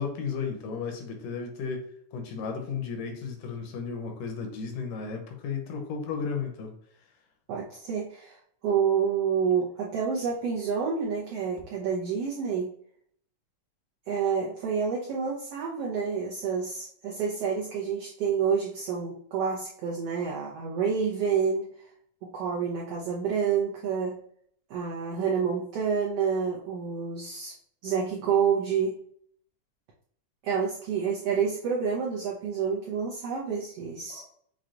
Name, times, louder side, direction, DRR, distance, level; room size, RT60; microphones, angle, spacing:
voice 1, 0.0-6.7 34.1-34.3, left 5 dB, 80° left, 3 dB, 2.4 m, -34 dB
voice 2, 7.5-8.4 8.6-12.7 14.1-21.7 22.2-24.2 24.7-27.5 27.8-28.9 30.4-34.2, right 6 dB, 85° right, -3 dB, 1.3 m, -28 dB
6.1 x 2.3 x 3.8 m, 0.63 s
omnidirectional pair, 3.8 m